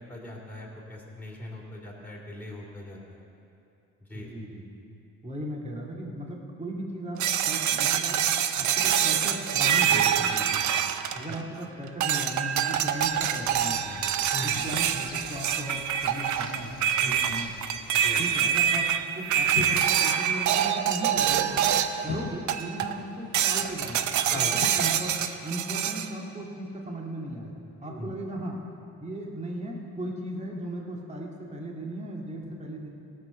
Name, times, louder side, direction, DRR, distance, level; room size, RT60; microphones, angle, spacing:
voice 1, 0.1-3.2 4.0-4.3 11.1-11.4 14.3-14.6 17.0-17.3 17.9-18.2 24.3-24.8 27.8-28.1, left 1 dB, 5° left, -4 dB, 2.8 m, -40 dB
voice 2, 4.1-4.6 5.2-8.2 8.5-10.6 11.2-14.1 14.4-16.8 17.0-17.5 18.2-18.9 19.1-21.7 22.0-25.1 25.4-28.6 29.0-32.9, right 1 dB, 20° right, -1 dB, 2.0 m, -36 dB
sound 1, 7.2-11.6 12.0-22.1 22.5-23.0 23.3-26.1, right 9 dB, 70° right, 0.7 m, -25 dB
Bird, 13.0-18.6, left 3 dB, 30° left, 1.5 m, -49 dB
sound 2, 17.7-17.9 18.2-24.7, left 9 dB, 80° left, 0.7 m, -42 dB
17.0 x 6.2 x 6.7 m, 2.7 s
cardioid pair, 90°, 30 cm